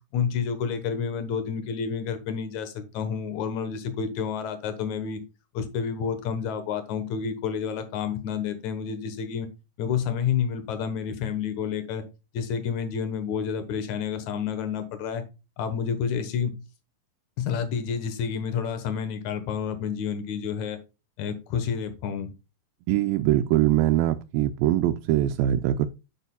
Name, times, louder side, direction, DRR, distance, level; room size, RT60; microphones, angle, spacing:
voice 1, 0.1-5.2 5.5-9.5 9.8-12.0 12.3-15.2 15.6-16.5 17.4-20.8 21.2-22.3, left 7 dB, 65° left, 2.3 m, -29 dB
voice 2, 22.9-25.9, right 13 dB, 85° right, 2.3 m, -22 dB
8.2 x 8.1 x 2.3 m
omnidirectional pair, 4.1 m